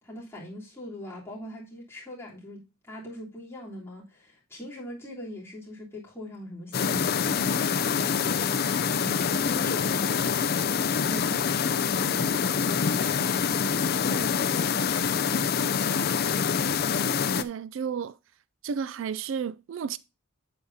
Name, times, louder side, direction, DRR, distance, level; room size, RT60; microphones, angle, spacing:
voice 1, 0.0-10.3 11.0-15.6, left 1 dB, 10° left, 3.3 m, -42 dB
sound 1, 6.7-17.4, left 6 dB, 45° left, 0.4 m, -26 dB
voice 2, 17.4-18.2 18.6-20.0, right 6 dB, 60° right, 0.3 m, -32 dB
8.5 x 8.2 x 2.7 m
head